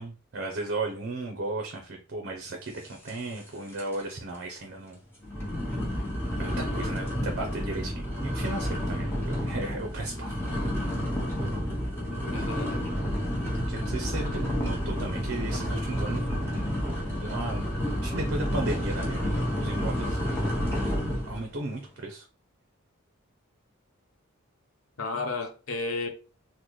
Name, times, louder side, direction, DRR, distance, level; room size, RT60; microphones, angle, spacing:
voice 1, 0.0-5.0 6.4-10.4 13.7-16.8 17.2-17.7 18.0-20.2 20.8-21.0 21.3-22.3, right 2 dB, 55° right, 0.6 m, -35 dB
sound 1, 3.1-3.5 3.7-4.1 4.6-4.7 5.2-21.4, equal, 10° left, 1.0 m, -30 dB
voice 2, 11.9-12.8 25.0-26.1, left 3 dB, 80° left, 0.8 m, -33 dB
3.9 x 2.1 x 3.1 m
head